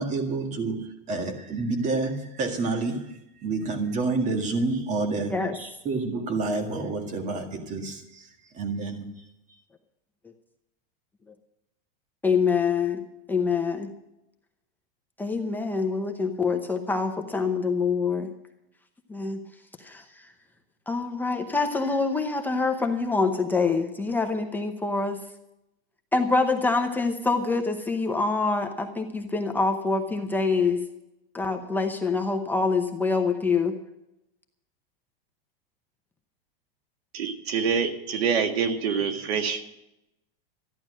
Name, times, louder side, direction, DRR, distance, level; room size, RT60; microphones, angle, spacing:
voice 1, 0.0-8.3 8.5-9.1, right 3 dB, 25° right, 6 dB, 1.8 m, -29 dB
voice 2, 12.2-13.9 15.2-18.3 19.1-19.4 19.8-20.0 20.9-25.2 26.1-30.8 31.3-33.8, left 4 dB, 5° left, 3 dB, 0.7 m, -25 dB
voice 3, 37.1-39.6, right 6 dB, 90° right, 7 dB, 1.9 m, -26 dB
14.0 x 10.5 x 6.3 m, 0.88 s
supercardioid pair, 160°, 30 cm